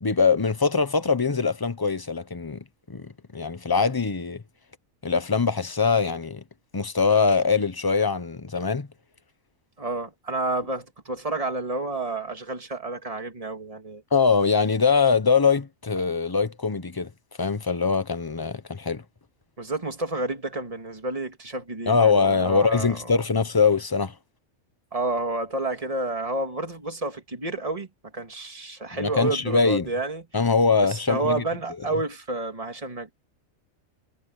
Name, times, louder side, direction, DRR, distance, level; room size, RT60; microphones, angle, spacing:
voice 1, 0.0-4.4 5.0-6.4 6.7-8.9 14.1-17.1 17.4-19.0 21.9-24.1 28.9-29.9 30.3-31.4, left 5 dB, 20° left, 0.7 m, -22 dB
voice 2, 9.8-14.0 19.6-23.1 24.9-27.9 28.1-30.2 30.8-33.1, right 2 dB, 25° right, 2.5 m, -30 dB
omnidirectional pair, 1.4 m